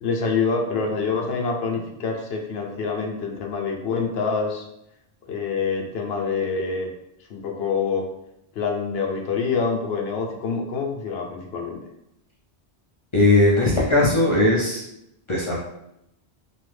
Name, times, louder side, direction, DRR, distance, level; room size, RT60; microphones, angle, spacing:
voice 1, 0.0-4.6 5.3-6.9 7.3-8.1 8.6-11.8, left 5 dB, 70° left, 1 dB, 0.8 m, -26 dB
voice 2, 13.1-14.8 15.3-15.6, left 2 dB, 45° left, -5 dB, 0.4 m, -18 dB
2.7 x 2.4 x 3.2 m, 0.82 s
omnidirectional pair, 1.1 m